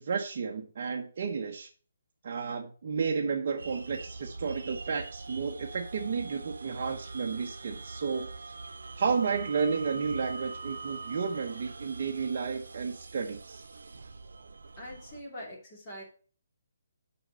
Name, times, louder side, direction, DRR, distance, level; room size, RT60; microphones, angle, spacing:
voice 1, 0.0-1.7 2.2-8.5 9.0-13.6, right 5 dB, 40° right, 1 dB, 0.9 m, -32 dB
sound 1, 3.6-15.2, right 3 dB, 90° right, 0.7 m, -43 dB
voice 2, 14.8-16.0, equal, 15° left, -5 dB, 3.0 m, -43 dB
5.8 x 5.2 x 6.2 m, 0.40 s
hypercardioid pair, 170°, 0 cm